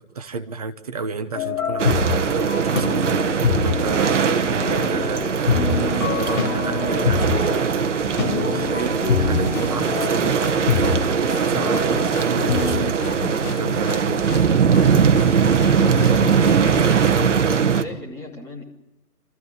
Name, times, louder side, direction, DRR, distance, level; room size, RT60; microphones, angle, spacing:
voice 1, 0.0-13.2 13.4-14.3, right 4 dB, 25° right, 8 dB, 1.0 m, -31 dB
sound 1, 1.3-12.9, left 5 dB, 55° left, 3.2 m, -25 dB
sound 2, 1.8-17.8, right 6 dB, 50° right, 1.4 m, -20 dB
sound 3, 9.3-17.1, left 5 dB, 75° left, 2.5 m, -34 dB
voice 2, 15.7-18.6, left 2 dB, 5° left, -4 dB, 2.7 m, -36 dB
26.5 x 14.5 x 10.0 m, 0.91 s
hypercardioid pair, 165°, 46 cm